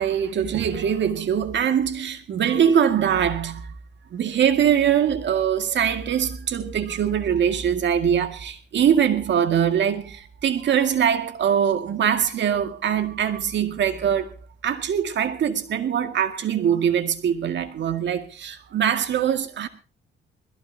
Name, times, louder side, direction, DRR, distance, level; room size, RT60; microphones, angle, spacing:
voice 1, 0.0-3.7 4.1-14.4 14.6-19.7, right 8 dB, 65° right, 2.1 m, -22 dB
21.5 x 15.5 x 2.8 m
cardioid pair, 90°, 20 cm